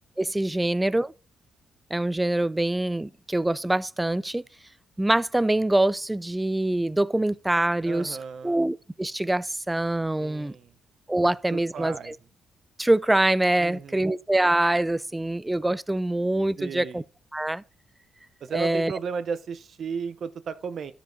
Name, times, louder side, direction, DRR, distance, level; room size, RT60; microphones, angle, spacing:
voice 1, 0.2-1.1 1.9-4.4 5.0-8.2 8.4-10.5 11.1-12.1 12.8-17.0 17.3-17.6 18.5-18.9, right 1 dB, 10° right, 0.3 m, -24 dB
voice 2, 7.8-8.6 10.2-10.7 11.5-12.1 13.6-14.1 16.6-17.0 18.4-20.9, right 6 dB, 50° right, 0.7 m, -34 dB
13.0 x 5.0 x 4.0 m
cardioid pair, 140°, 0 cm